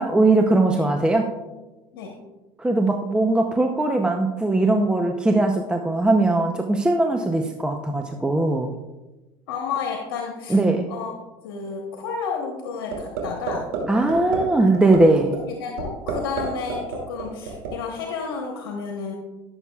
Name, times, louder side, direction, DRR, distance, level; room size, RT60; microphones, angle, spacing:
voice 1, 0.0-1.3 2.6-8.7 10.5-10.9 13.9-15.4, right 2 dB, 5° right, 3 dB, 0.7 m, -20 dB
voice 2, 9.5-10.6 10.9-11.1 11.4-13.7 15.2-19.2, left 5 dB, 90° left, 1 dB, 1.2 m, -31 dB
sound 1, 12.9-13.2 13.5-13.8 14.1-14.4 14.7-15.0 15.3-15.4 15.8-16.4 16.7-17.7, right 10 dB, 90° right, 2.6 m, -28 dB
13.5 x 7.2 x 2.4 m, 1.1 s
supercardioid pair, 100°, 12 cm